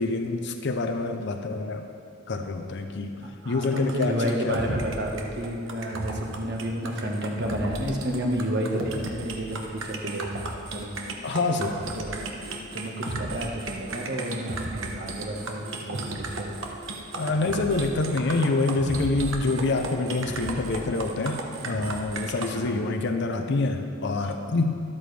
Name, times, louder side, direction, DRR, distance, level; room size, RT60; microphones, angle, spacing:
voice 1, 0.0-1.9 2.3-4.8 11.2-11.8 17.2-24.8, left 3 dB, 60° left, 5 dB, 0.6 m, -26 dB
voice 2, 3.2-10.4 10.7-10.9 12.0-12.2 12.7-16.6 22.5-23.0, equal, 55° right, 1 dB, 1.4 m, -31 dB
sound 1, 3.6-22.5, right 2 dB, 70° right, 1.1 m, -35 dB
12.5 x 12.0 x 3.4 m, 2.5 s
head